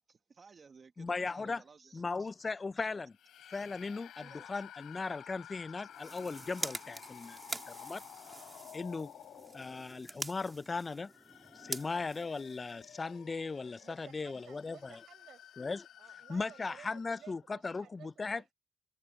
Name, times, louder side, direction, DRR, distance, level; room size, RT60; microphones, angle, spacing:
voice 1, 0.0-2.3 2.8-3.0 3.5-3.7 4.2-4.6 5.2-5.3 5.7-6.6, right 5 dB, 40° right, 1.5 m, -59 dB
voice 2, 1.0-1.6 1.9-3.1 3.5-8.0 8.7-9.1 9.5-11.1 11.6-15.0 15.6-15.9 16.3-18.4, left 4 dB, 30° left, 0.4 m, -38 dB
sound 1, 3.1-10.2 10.9-17.4, left 11 dB, 75° left, 3.3 m, -53 dB
sound 2, 5.8-13.1, right 2 dB, 20° right, 2.2 m, -45 dB
voice 3, 13.8-15.5 16.0-18.5, right 10 dB, 70° right, 5.2 m, -56 dB
cardioid pair, 90°, 0 cm